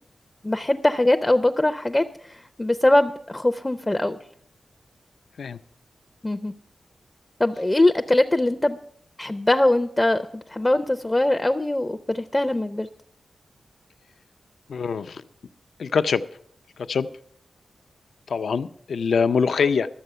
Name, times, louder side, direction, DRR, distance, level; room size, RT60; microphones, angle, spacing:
voice 1, 0.4-4.2 6.2-6.5 7.4-8.8 9.2-12.9, left 1 dB, 15° left, 7 dB, 0.5 m, -22 dB
voice 2, 14.7-15.2 15.8-16.2 16.8-17.1 18.3-19.9, left 5 dB, 75° left, 11 dB, 0.5 m, -23 dB
12.0 x 7.6 x 6.6 m, 0.68 s
wide cardioid pair, 110°, 0 cm